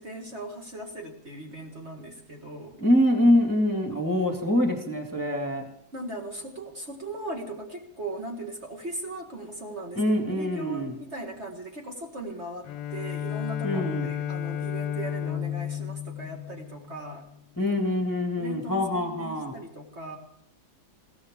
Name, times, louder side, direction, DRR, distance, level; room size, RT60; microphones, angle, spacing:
voice 1, 0.0-2.8 5.9-10.0 10.3-17.3 18.4-20.2, right 1 dB, 40° right, 1 dB, 1.9 m, -38 dB
voice 2, 2.8-5.6 9.9-10.9 13.6-14.1 17.6-19.5, left 1 dB, 10° left, 1 dB, 1.7 m, -24 dB
Bowed string instrument, 12.6-17.3, left 9 dB, 70° left, 1.3 m, -33 dB
21.0 x 16.0 x 3.6 m, 0.68 s
omnidirectional pair, 2.0 m